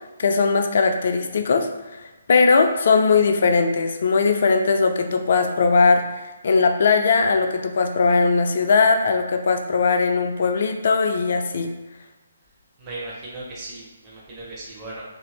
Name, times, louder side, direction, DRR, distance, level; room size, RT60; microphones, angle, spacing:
voice 1, 0.2-1.7 2.3-11.7, left 4 dB, 50° left, 5 dB, 0.3 m, -19 dB
voice 2, 12.8-15.0, right 2 dB, 20° right, -7 dB, 0.7 m, -37 dB
2.7 x 2.5 x 3.1 m, 1.1 s
figure-of-eight pair, 135°, 0 cm